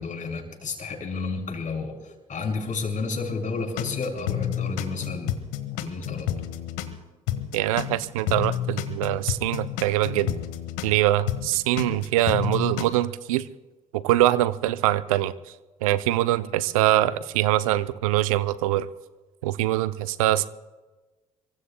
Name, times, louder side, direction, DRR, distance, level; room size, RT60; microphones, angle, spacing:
voice 1, 0.0-5.4 5.8-6.3, left 4 dB, 50° left, 2 dB, 5.7 m, -31 dB
sound 1, 3.8-7.0 7.3-11.0 11.3-12.8, left 12 dB, 80° left, 1.4 m, -30 dB
voice 2, 7.5-10.3 10.8-13.4 13.9-15.3 15.8-18.9 19.4-20.5, right 14 dB, 85° right, 15 dB, 0.5 m, -23 dB
26.5 x 24.0 x 2.2 m, 1.2 s
hypercardioid pair, 50°, 17 cm